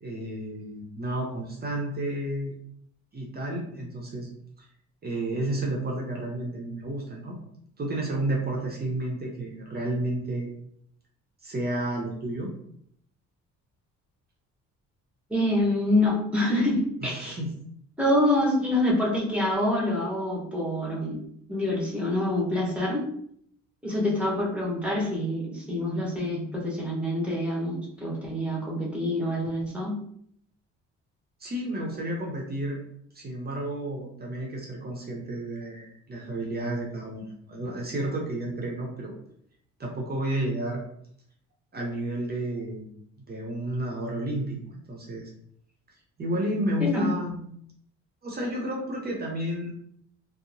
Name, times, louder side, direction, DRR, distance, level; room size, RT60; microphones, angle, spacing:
voice 1, 0.0-2.5 3.1-4.3 5.0-7.4 7.8-10.5 11.4-12.5 17.0-17.5 31.4-32.8 33.1-39.1 39.8-40.8 41.7-42.9 43.3-45.3 46.2-47.5 48.2-49.7, right 1 dB, 30° right, -1 dB, 0.7 m, -31 dB
voice 2, 15.3-17.4 18.0-21.2 21.5-23.1 23.8-30.0 46.8-47.1, left 1 dB, 5° right, -4 dB, 0.9 m, -26 dB
2.8 x 2.0 x 2.6 m, 0.67 s
cardioid pair, 90°, 30 cm